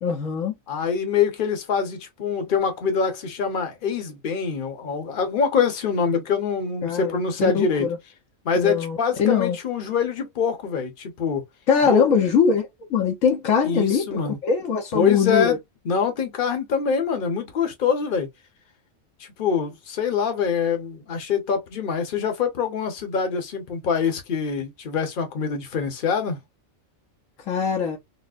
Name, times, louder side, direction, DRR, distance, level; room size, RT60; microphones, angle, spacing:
voice 1, 0.0-0.5 6.8-8.0 8.6-9.6 11.7-15.6 27.5-28.0, left 6 dB, 75° left, 1.1 m, -22 dB
voice 2, 0.7-7.9 8.4-11.4 11.8-12.1 13.6-14.4 14.9-15.6 15.8-18.3 19.2-26.4, left 6 dB, 45° left, 0.9 m, -24 dB
4.2 x 2.0 x 2.4 m
omnidirectional pair, 1.4 m